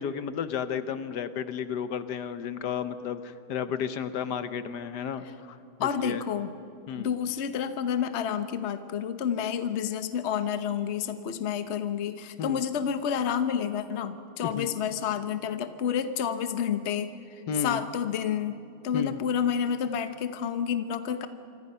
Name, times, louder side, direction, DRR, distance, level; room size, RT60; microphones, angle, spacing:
voice 1, 0.0-5.3 5.8-6.2 6.9-7.1 12.4-12.6 14.4-14.7 17.5-17.8 18.9-19.1, left 7 dB, 75° left, 11 dB, 1.5 m, -32 dB
voice 2, 5.8-6.5 6.9-18.6 18.8-21.3, left 8 dB, 50° left, 10 dB, 1.1 m, -29 dB
26.5 x 25.0 x 5.6 m, 2.6 s
omnidirectional pair, 1.8 m